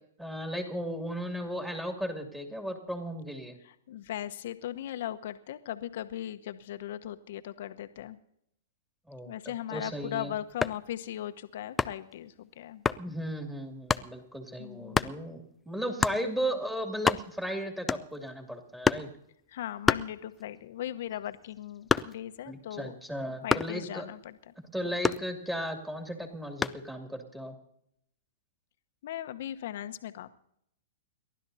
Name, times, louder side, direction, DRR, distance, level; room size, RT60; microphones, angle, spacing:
voice 1, 0.2-3.6 9.1-9.3 9.7-10.3 13.0-19.1 22.5-24.1 24.7-27.5, equal, 5° right, 3 dB, 2.5 m, -35 dB
voice 2, 3.6-8.2 9.2-12.8 14.6-15.1 16.2-16.5 19.5-22.9 23.4-24.5 29.0-30.3, left 12 dB, 60° left, 10 dB, 1.0 m, -38 dB
sound 1, 10.5-10.9 11.8-12.1 12.8-13.1 13.9-14.1 14.9-15.2 16.0-16.2 16.7-16.8 16.9-17.5 17.9-18.3 18.8-19.2 19.8-20.6 21.0-22.4 23.5-23.8 25.0-25.7 26.6-26.9, left 5 dB, 15° left, 0.4 m, -28 dB
29.5 x 12.0 x 2.8 m, 0.75 s
hypercardioid pair, 120°, 0 cm